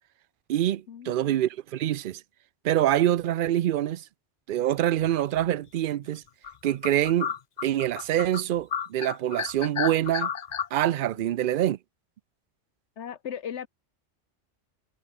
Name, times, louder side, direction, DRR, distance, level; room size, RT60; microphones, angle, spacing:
voice 1, 0.5-2.2 2.6-4.0 4.5-6.2 6.6-7.3 7.6-10.3 10.7-11.8, right 12 dB, 60° right, 0.6 m, -25 dB
sound 1, 5.1-5.5 6.0-6.1 6.4-8.4 8.7-10.7, left 8 dB, 45° left, 0.7 m, -32 dB
voice 2, 13.0-13.7, left 8 dB, 85° left, 1.3 m, -36 dB
omnidirectional pair, 1.1 m